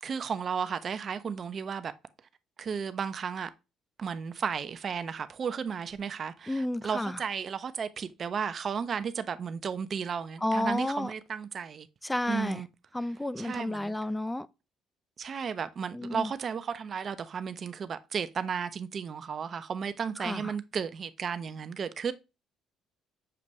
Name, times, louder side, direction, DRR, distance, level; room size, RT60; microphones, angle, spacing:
voice 1, 0.0-1.9 2.6-3.5 4.0-11.9 12.3-12.7 13.4-14.0 15.2-22.1, right 6 dB, 45° right, 0.5 m, -34 dB
voice 2, 6.5-7.2 10.4-11.1 12.0-12.6 12.9-14.5 15.9-16.3 20.2-20.5, left 1 dB, 10° left, 0.3 m, -31 dB
6.7 x 2.5 x 3.0 m
cardioid pair, 95°, 0 cm